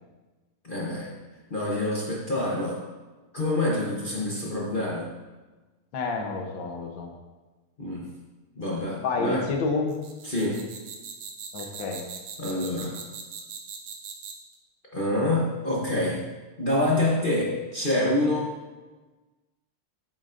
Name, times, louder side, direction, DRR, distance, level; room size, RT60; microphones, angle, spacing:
voice 1, 0.6-1.1 1.5-2.8 3.3-5.1 7.8-8.1 8.6-9.5 10.2-10.7 11.6-11.7 12.4-13.0 14.9-16.3 16.6-18.5, left 1 dB, 40° left, -4 dB, 0.8 m, -27 dB
voice 2, 5.9-7.1 9.0-9.9 11.5-12.0, left 3 dB, 65° left, 3 dB, 1.6 m, -29 dB
sound 1, 9.9-14.5, right 6 dB, 80° right, 1.7 m, -40 dB
8.7 x 7.9 x 2.6 m, 1.2 s
omnidirectional pair, 2.4 m